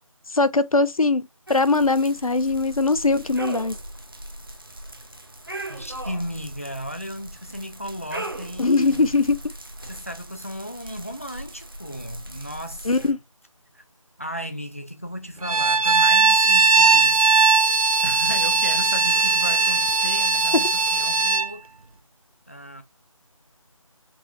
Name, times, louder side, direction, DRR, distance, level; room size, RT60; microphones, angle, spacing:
voice 1, 0.3-3.8 8.6-9.4 12.9-13.2, left 3 dB, 80° left, 1.0 m, -21 dB
sound 1, 1.5-13.1, right 1 dB, 40° right, 0.8 m, -39 dB
voice 2, 5.7-9.1 9.8-13.2 13.7-13.8 14.2-17.3 18.0-21.7 22.5-22.8, equal, 25° left, 0.7 m, -35 dB
Bowed string instrument, 15.4-21.5, right 4 dB, 85° right, 0.6 m, -19 dB
5.9 x 3.0 x 2.4 m
figure-of-eight pair, 180°, 18 cm